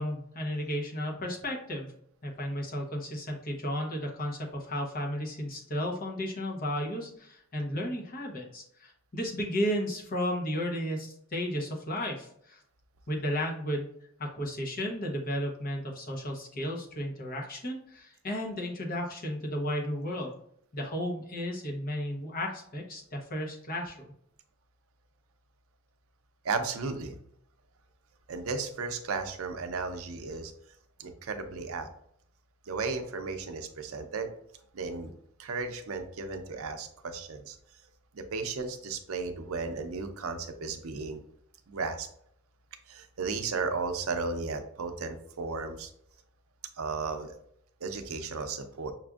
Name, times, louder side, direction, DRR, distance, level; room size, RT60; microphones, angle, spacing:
voice 1, 0.0-1.9 2.2-12.6 13.1-13.9 14.2-20.4 20.7-24.1, equal, 45° left, 1 dB, 0.9 m, -33 dB
voice 2, 26.4-27.2 28.3-30.5 31.0-31.9 32.7-34.3 34.7-35.1 35.4-37.6 38.1-41.2 41.7-42.1 42.9-45.9 46.8-47.3 47.8-48.9, right 4 dB, 90° right, 7 dB, 0.5 m, -34 dB
5.8 x 2.5 x 2.3 m, 0.70 s
head